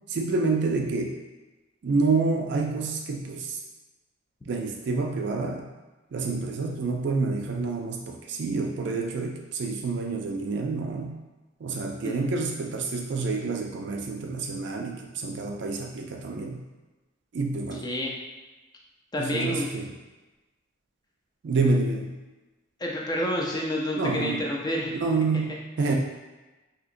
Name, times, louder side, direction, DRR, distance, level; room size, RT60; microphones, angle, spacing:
voice 1, 0.1-1.1 1.8-3.6 4.5-5.7 6.1-11.1 11.6-16.7 17.3-17.9 19.2-19.9 21.4-22.2 23.9-24.4 25.0-25.9, right 3 dB, 55° right, 2 dB, 0.3 m, -28 dB
voice 2, 12.0-12.4 17.8-18.1 19.1-19.7 22.8-24.9 25.5-25.6, left 1 dB, 20° left, -2 dB, 0.4 m, -29 dB
3.7 x 2.8 x 2.5 m, 1.1 s
head